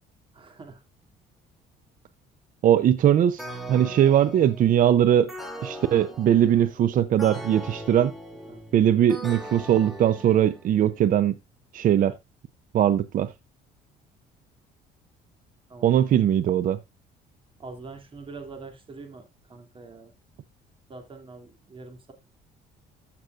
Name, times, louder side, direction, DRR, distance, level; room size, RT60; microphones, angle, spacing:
voice 1, 0.3-0.8 8.4-8.6 15.7-16.0 17.6-20.1 20.9-22.1, right 3 dB, 30° right, 2.6 m, -44 dB
voice 2, 2.6-5.3 5.6-8.1 8.7-11.4 11.7-12.1 12.7-13.3 15.8-16.8, right 10 dB, 55° right, 0.6 m, -20 dB
sound 1, 3.4-11.0, right 1 dB, ahead, 2.6 m, -40 dB
14.5 x 6.0 x 2.4 m
cardioid pair, 110°, 17 cm